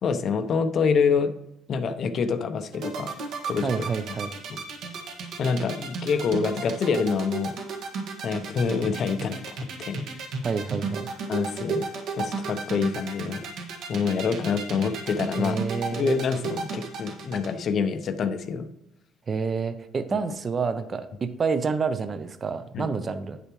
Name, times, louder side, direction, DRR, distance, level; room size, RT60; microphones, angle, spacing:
voice 1, 0.0-1.3 1.7-3.1 3.5-3.8 4.5-4.6 5.4-7.6 8.2-10.0 11.3-11.9 12.2-13.5 13.9-15.6 15.9-18.7 22.7-22.9, left 5 dB, 40° left, 10 dB, 0.6 m, -26 dB
sound 1, 2.7-17.5, right 5 dB, 65° right, 1.5 m, -33 dB
voice 2, 3.6-4.3 10.4-11.1 15.4-16.1 19.3-23.4, right 5 dB, 25° right, 11 dB, 0.6 m, -28 dB
9.8 x 6.7 x 3.0 m, 0.88 s
cardioid pair, 165°, 0 cm